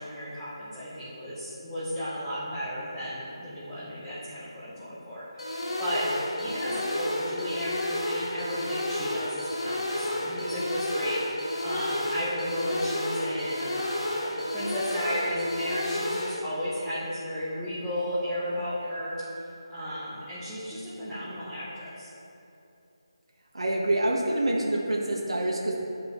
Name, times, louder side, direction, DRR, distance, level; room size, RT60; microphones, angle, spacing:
voice 1, 0.0-6.1 6.4-22.1, equal, ahead, -17 dB, 1.0 m, -34 dB
sound 1, 5.4-16.4, left 1 dB, 85° left, 1.1 m, -31 dB
voice 2, 23.5-25.8, right 1 dB, 80° right, -2 dB, 1.5 m, -26 dB
11.5 x 5.2 x 3.1 m, 2.7 s
figure-of-eight pair, 170°, 3 cm